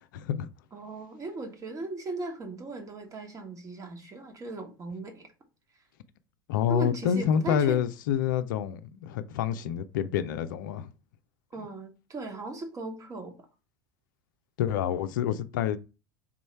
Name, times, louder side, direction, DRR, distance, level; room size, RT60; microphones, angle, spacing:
voice 1, 0.1-0.5 6.5-10.9 14.6-15.8, left 9 dB, 60° left, 0.4 m, -27 dB
voice 2, 0.7-5.3 6.7-7.8 11.5-13.3, right 2 dB, 30° right, 1.4 m, -37 dB
3.6 x 3.1 x 4.4 m
figure-of-eight pair, 75°, 12 cm